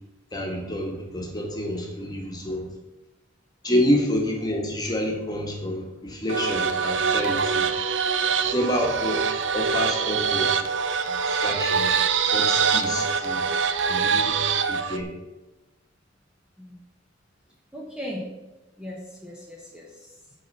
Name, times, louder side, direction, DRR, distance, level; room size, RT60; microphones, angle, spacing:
voice 1, 0.3-2.7 3.6-7.7 8.5-9.2 9.5-10.6 11.0-12.0 12.3-13.4 13.9-14.4 14.7-15.1, equal, 20° left, 0 dB, 1.6 m, -28 dB
sound 1, 6.3-15.0, right 6 dB, 70° right, 0.6 m, -24 dB
voice 2, 17.7-18.2 18.8-20.2, left 1 dB, 5° right, -4 dB, 1.1 m, -38 dB
9.4 x 4.1 x 6.7 m, 1.1 s
head